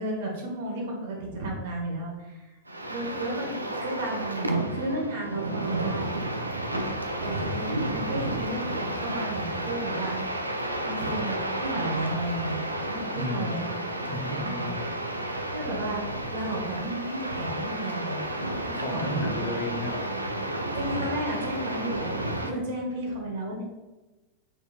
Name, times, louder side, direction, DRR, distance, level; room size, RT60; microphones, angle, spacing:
voice 1, 0.0-2.4 2.9-6.1 7.2-10.2 10.8-12.6 12.8-13.7 14.4-14.7 15.5-18.3 18.7-19.2 20.8-23.6, right 1 dB, 55° right, -1 dB, 1.2 m, -33 dB
sound 1, 2.7-22.5, right 1 dB, 85° right, 0.4 m, -31 dB
voice 2, 13.1-14.9 18.8-20.2, left 1 dB, 45° left, 3 dB, 0.7 m, -34 dB
4.8 x 4.1 x 2.4 m, 1.1 s
figure-of-eight pair, 90°, 0 cm